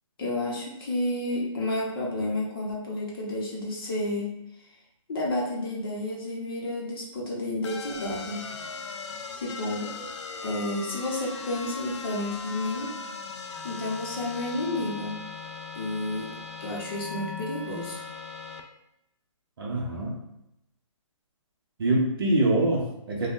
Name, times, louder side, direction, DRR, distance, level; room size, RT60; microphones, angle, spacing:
voice 1, 0.2-4.4 5.1-8.5 9.4-9.9 10.4-12.9 13.6-15.2 15.7-16.3 16.6-18.0, left 1 dB, 45° left, -3 dB, 0.8 m, -31 dB
sound 1, 7.6-18.6, left 4 dB, 60° left, 0.4 m, -38 dB
voice 2, 19.6-20.2 21.8-23.3, right 2 dB, 45° right, -2 dB, 0.7 m, -24 dB
3.4 x 2.2 x 2.5 m, 0.84 s
hypercardioid pair, 165°, 17 cm